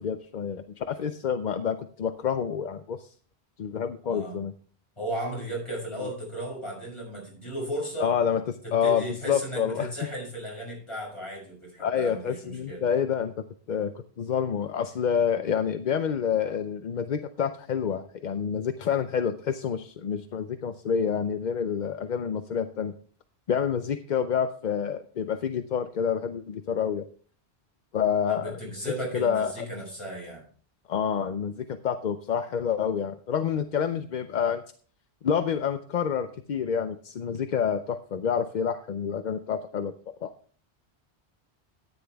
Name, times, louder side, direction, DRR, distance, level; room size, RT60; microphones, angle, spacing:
voice 1, 0.0-3.1 3.6-4.5 6.0-6.1 8.0-9.9 11.8-13.9 14.2-22.9 23.5-27.0 27.9-28.4 28.9-29.6 30.9-34.6 35.2-39.9 40.2-40.3, left 7 dB, 50° left, 9 dB, 0.6 m, -28 dB
voice 2, 4.0-4.4 5.0-8.1 8.6-12.8 28.2-30.4, right 1 dB, 25° left, -3 dB, 6.2 m, -35 dB
13.5 x 9.6 x 3.5 m, 0.43 s
omnidirectional pair, 1.1 m